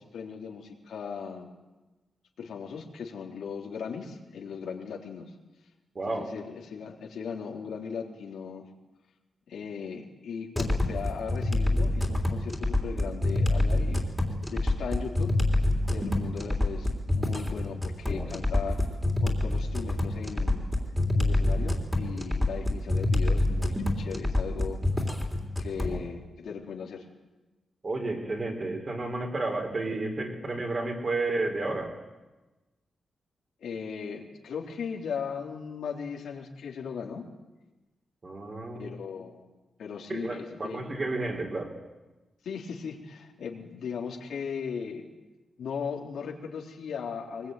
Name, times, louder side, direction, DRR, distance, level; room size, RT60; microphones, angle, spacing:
voice 1, 0.0-1.5 2.4-5.3 6.1-8.7 9.5-14.1 14.5-15.6 15.9-20.6 21.1-25.2 25.6-27.0 33.6-37.3 38.8-39.5 39.8-41.0 42.4-45.1 45.6-47.5, left 6 dB, 85° left, 0 dB, 3.6 m, -38 dB
voice 2, 6.0-6.3 27.8-31.9 38.2-39.0 40.1-41.7, right 2 dB, 30° right, 3 dB, 3.8 m, -31 dB
sound 1, 10.6-26.0, left 2 dB, ahead, 3.3 m, -27 dB
23.0 x 21.0 x 9.2 m, 1.1 s
wide cardioid pair, 160°, 0 cm